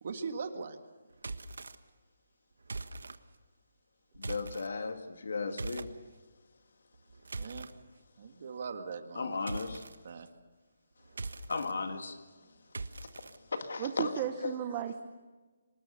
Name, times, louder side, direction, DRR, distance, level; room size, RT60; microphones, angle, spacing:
voice 1, 0.0-0.8 7.4-7.7 8.2-9.7 10.0-10.3, right 5 dB, 40° right, 1.8 m, -40 dB
sound 1, 1.1-1.8 2.6-3.2 4.1-4.7 5.6-5.9 6.9-7.7 9.5-10.0 11.1-11.7 12.7-13.4, right 3 dB, 90° right, 1.3 m, -41 dB
voice 2, 4.2-5.9 9.2-9.8 11.5-12.2 13.5-14.1 14.4-14.5, left 4 dB, 65° left, 2.0 m, -35 dB
voice 3, 13.8-15.0, right 10 dB, 20° right, 0.8 m, -35 dB
25.0 x 20.5 x 6.8 m
hypercardioid pair, 175°, 0 cm